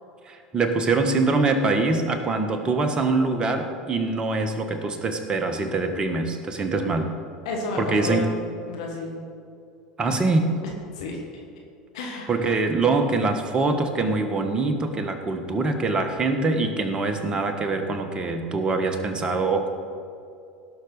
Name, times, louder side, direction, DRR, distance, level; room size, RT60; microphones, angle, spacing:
voice 1, 0.3-7.1 7.8-8.3 10.0-10.6 12.3-19.7, right 3 dB, 25° right, 6 dB, 1.4 m, -24 dB
voice 2, 7.4-8.3 8.7-9.2 11.0-11.2 11.9-12.3, left 3 dB, 70° left, 0 dB, 1.7 m, -31 dB
18.0 x 6.2 x 4.9 m, 2.4 s
hypercardioid pair, 75°, 4 cm